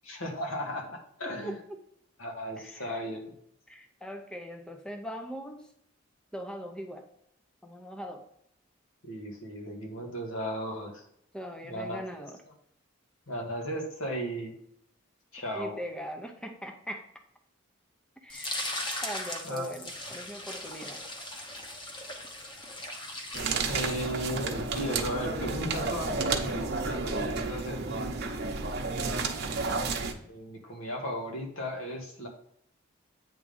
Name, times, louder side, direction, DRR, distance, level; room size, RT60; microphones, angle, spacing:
voice 1, 0.0-1.6 2.2-3.3 9.0-11.0 11.6-12.3 13.3-14.5 15.3-15.8 19.4-19.9 23.7-28.2 30.3-32.3, equal, 85° left, 1 dB, 1.8 m, -36 dB
voice 2, 1.2-1.5 2.6-3.0 3.7-5.7 6.3-7.1 7.6-8.2 11.3-12.4 15.5-17.1 18.2-18.7 19.0-21.0, equal, 5° left, 4 dB, 0.6 m, -41 dB
sound 1, 18.3-24.3, left 1 dB, 25° left, 0.9 m, -38 dB
sound 2, 23.3-30.1, right 4 dB, 50° right, 0.8 m, -31 dB
8.6 x 3.7 x 5.4 m, 0.72 s
head